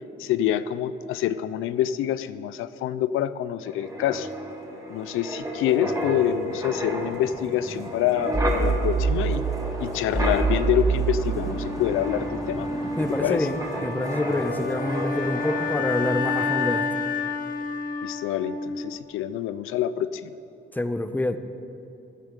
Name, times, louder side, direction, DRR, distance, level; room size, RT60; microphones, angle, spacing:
voice 1, 0.2-4.3 4.9-9.4 9.8-12.7 13.2-13.5 18.0-20.3, left 11 dB, 85° left, 14 dB, 0.5 m, -26 dB
Wind, 3.7-16.1 16.4-16.6, right 3 dB, 15° right, 2.4 m, -29 dB
Wind instrument woodwind instrument, 11.2-19.2, left 4 dB, 40° left, 1.6 m, -30 dB
voice 2, 13.0-16.8 20.7-21.4, left 1 dB, 10° left, 10 dB, 0.8 m, -27 dB
15.5 x 10.0 x 5.2 m, 2.8 s
cardioid pair, 75°, 21 cm